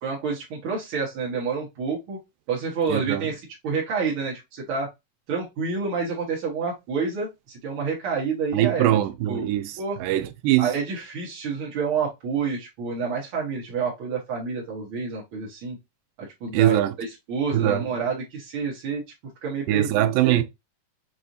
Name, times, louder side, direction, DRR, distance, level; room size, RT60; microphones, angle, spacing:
voice 1, 0.0-2.2 2.5-4.9 5.3-9.0 9.3-9.5 9.8-10.0 10.6-15.8 16.2-19.0 19.4-19.9 20.2-20.4, right 5 dB, 65° right, 1.3 m, -28 dB
voice 2, 2.9-3.3 8.5-10.7 16.5-16.9 17.5-17.9 19.7-20.4, right 13 dB, 85° right, 2.2 m, -22 dB
6.1 x 2.5 x 2.6 m
omnidirectional pair, 3.8 m